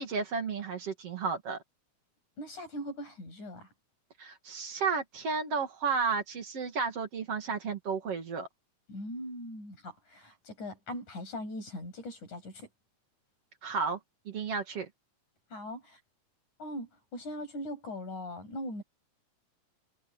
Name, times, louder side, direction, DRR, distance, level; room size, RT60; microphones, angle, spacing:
voice 1, 0.0-1.6 4.2-8.5 13.6-14.0 14.2-14.9, right 5 dB, 55° right, 3.3 m, -32 dB
voice 2, 2.4-3.7 8.9-12.7 15.5-16.0 16.6-18.8, left 1 dB, 85° left, 9.4 m, -40 dB
omnidirectional pair, 3.4 m